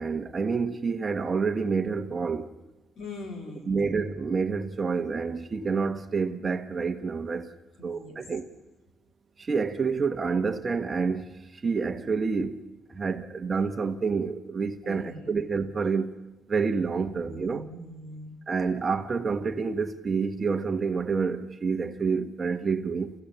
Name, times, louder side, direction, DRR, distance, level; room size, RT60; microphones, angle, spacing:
voice 1, 0.0-2.5 3.7-7.5 7.8-8.5 9.4-16.2 16.5-17.7 18.5-23.1, right 5 dB, 30° right, 1.2 m, -28 dB
voice 2, 3.0-3.8 7.8-8.2 14.8-15.3 17.1-18.3, left 2 dB, 60° left, 4.0 m, -42 dB
29.5 x 15.5 x 6.8 m
cardioid pair, 115°, 0 cm